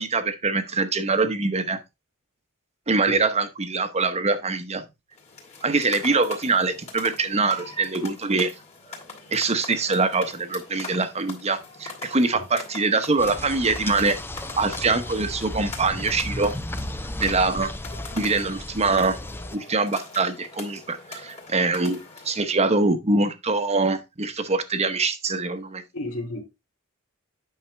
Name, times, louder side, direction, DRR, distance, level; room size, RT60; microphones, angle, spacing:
voice 1, 0.0-1.8 2.9-4.8 5.6-8.5 9.3-14.2 14.6-16.5 17.2-17.7 18.1-19.2 19.5-22.0 22.2-25.8, right 3 dB, 30° right, 0.9 m, -24 dB
sound 1, 5.1-22.4, left 4 dB, 30° left, 2.4 m, -42 dB
sound 2, 13.2-19.6, left 1 dB, 10° left, 0.5 m, -34 dB
voice 2, 25.9-26.4, left 1 dB, 75° left, 2.3 m, -32 dB
8.9 x 5.7 x 3.3 m
head